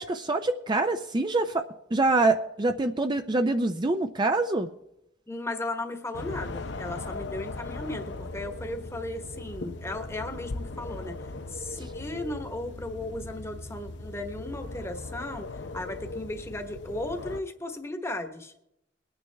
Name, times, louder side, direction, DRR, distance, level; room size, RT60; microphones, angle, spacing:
voice 1, 0.0-4.7, right 2 dB, 25° right, 7 dB, 0.5 m, -25 dB
voice 2, 5.3-11.2 11.5-15.5 15.7-18.6, left 1 dB, 15° left, 7 dB, 1.1 m, -36 dB
sound 1, 6.1-17.4, left 2 dB, 80° left, 0.7 m, -38 dB
22.0 x 9.4 x 3.4 m, 0.85 s
head